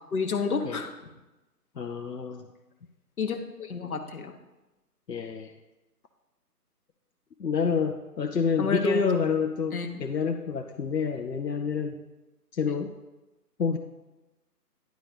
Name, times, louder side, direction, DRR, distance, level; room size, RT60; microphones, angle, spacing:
voice 1, 0.1-0.9 3.2-4.3 8.6-9.1 9.7-9.9, left 5 dB, 60° left, 5 dB, 1.0 m, -30 dB
voice 2, 1.8-2.5 5.1-5.5 7.4-12.0 12.5-12.9 13.6-13.8, left 5 dB, 80° left, 4 dB, 0.8 m, -28 dB
10.5 x 4.1 x 5.0 m, 1.1 s
figure-of-eight pair, 150°, 48 cm